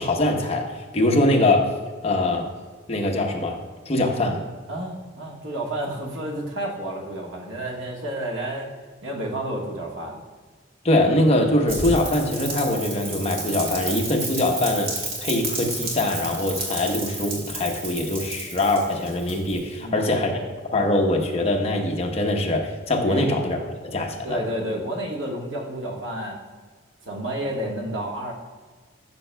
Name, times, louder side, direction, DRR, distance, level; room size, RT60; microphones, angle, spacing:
voice 1, 0.0-1.7 2.0-2.5 2.9-3.6 3.9-4.5 10.8-20.3 20.7-24.4, left 1 dB, 35° left, 1 dB, 0.9 m, -23 dB
voice 2, 4.7-8.7 9.0-10.2 19.8-20.5 23.1-23.6 24.2-26.4 27.0-28.3, right 1 dB, 70° right, 0 dB, 1.5 m, -31 dB
Rain, 11.7-19.8, right 2 dB, 50° right, 2.0 m, -32 dB
12.5 x 6.6 x 2.2 m, 1.4 s
head